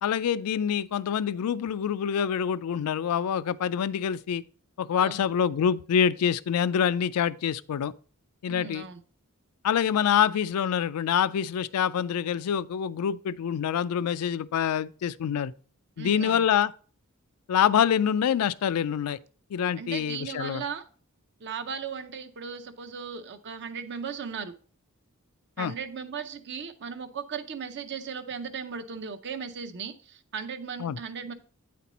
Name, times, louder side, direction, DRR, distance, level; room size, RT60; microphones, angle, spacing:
voice 1, 0.0-4.4 4.8-7.9 8.4-8.9 9.6-15.5 16.0-16.7 17.5-19.2 19.5-20.6 25.6-25.7 30.8-31.0, left 8 dB, 80° left, 0.3 m, -26 dB
voice 2, 8.5-9.0 16.0-16.4 19.8-20.9 21.4-24.5 25.6-31.3, right 6 dB, 50° right, 0.6 m, -37 dB
9.0 x 4.3 x 4.1 m
head